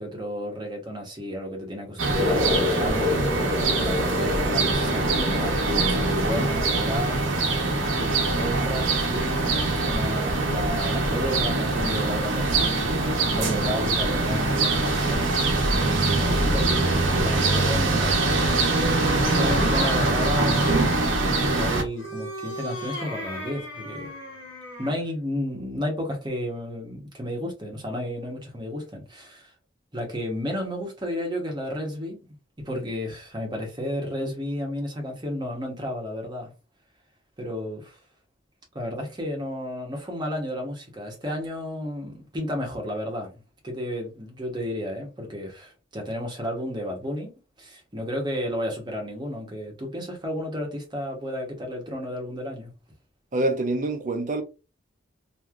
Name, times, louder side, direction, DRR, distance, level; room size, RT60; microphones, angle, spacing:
voice 1, 0.0-3.2 3.8-15.2 16.2-18.6 19.2-20.8 21.4-24.1 24.8-29.5 29.9-32.2 32.6-36.5 37.4-38.0 38.7-47.3 47.6-52.7, left 1 dB, 25° right, 1.0 m, -32 dB
sound 1, 2.0-21.8, right 2 dB, 85° right, 0.8 m, -23 dB
sound 2, 2.1-9.3, left 3 dB, 20° left, 1.7 m, -31 dB
sound 3, 18.0-21.0 21.9-25.1, left 1 dB, 65° left, 1.2 m, -36 dB
voice 2, 53.3-54.4, right 2 dB, 40° right, 0.6 m, -25 dB
3.2 x 2.6 x 2.4 m
head